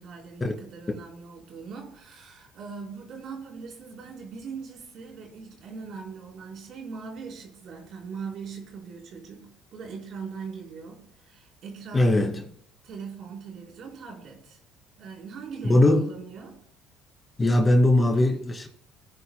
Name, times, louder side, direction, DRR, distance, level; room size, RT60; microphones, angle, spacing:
voice 1, 0.0-12.1 12.8-14.6 15.0-16.6, right 5 dB, 60° right, 4.1 m, -41 dB
voice 2, 11.9-12.4 15.6-16.1 17.4-18.7, left 1 dB, 25° left, 2.4 m, -20 dB
18.5 x 9.8 x 2.2 m
supercardioid pair, 70°, 0 cm